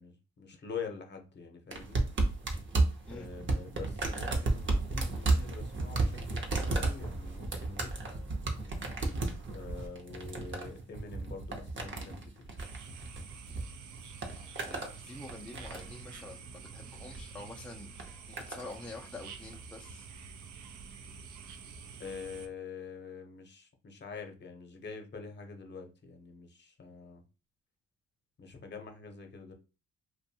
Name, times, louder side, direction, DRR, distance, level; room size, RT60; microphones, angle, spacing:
voice 1, 0.0-2.1 3.1-8.2 9.5-12.5 22.0-27.2 28.4-29.5, left 5 dB, 35° left, 0.8 m, -45 dB
sound 1, 1.7-13.6 13.9-14.9 15.3-16.0 16.9-17.2 18.0-18.7 19.5-19.6, right 2 dB, 40° right, 0.7 m, -33 dB
sound 2, 12.6-22.5, right 5 dB, 75° right, 0.5 m, -48 dB
voice 2, 14.7-20.1, left 2 dB, 5° left, 0.4 m, -47 dB
2.5 x 2.2 x 2.7 m
cardioid pair, 90°, 30 cm